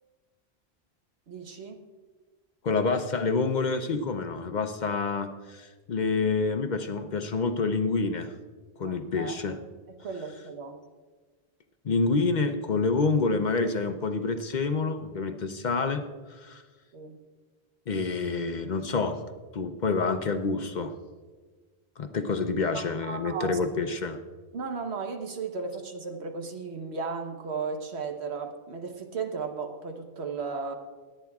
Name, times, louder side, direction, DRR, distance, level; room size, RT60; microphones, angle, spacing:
voice 1, 1.3-1.8 8.8-9.6 9.9-10.8 16.9-17.2 22.7-23.6 24.5-30.7, right 5 dB, 80° right, 5 dB, 1.3 m, -35 dB
voice 2, 2.6-8.3 8.8-9.6 11.8-16.0 16.3-16.6 17.9-19.2 19.5-20.9 22.0-24.2, left 4 dB, 50° left, 8 dB, 0.7 m, -27 dB
21.5 x 9.0 x 2.3 m, 1.4 s
omnidirectional pair, 1.1 m